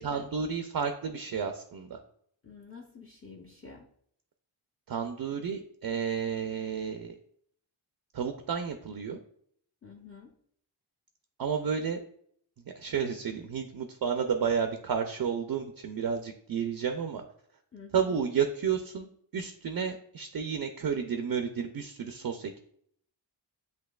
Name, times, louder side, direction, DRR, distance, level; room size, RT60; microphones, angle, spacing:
voice 1, 0.0-2.0 4.9-7.1 8.1-9.2 11.4-12.0 12.8-17.2 17.9-22.6, right 7 dB, 50° right, 6 dB, 0.5 m, -31 dB
voice 2, 2.4-3.9 9.8-10.3 17.7-18.2, left 4 dB, 30° left, -1 dB, 0.6 m, -48 dB
8.0 x 2.9 x 2.3 m, 0.64 s
wide cardioid pair, 80°, 48 cm